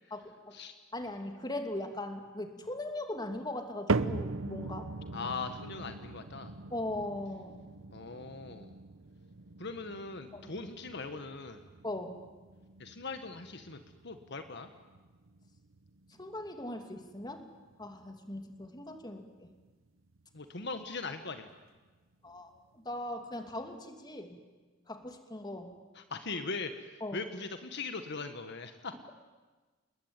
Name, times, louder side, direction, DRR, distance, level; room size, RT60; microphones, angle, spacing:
voice 1, 0.1-0.5 0.9-4.9 6.7-7.6 10.3-10.5 11.8-12.2 16.2-17.5 17.8-19.5 22.2-24.4 24.9-25.8 27.0-27.2, left 1 dB, 20° left, 5 dB, 2.7 m, -39 dB
sound 1, 3.9-20.2 20.5-21.0 21.6-21.7 22.6-22.7, right 3 dB, 85° right, 1.0 m, -40 dB
voice 2, 5.1-6.5 7.9-8.7 9.6-11.7 12.8-14.7 20.3-21.5 25.9-28.9, left 4 dB, 60° left, 8 dB, 1.6 m, -40 dB
28.5 x 21.0 x 9.1 m, 1.3 s
head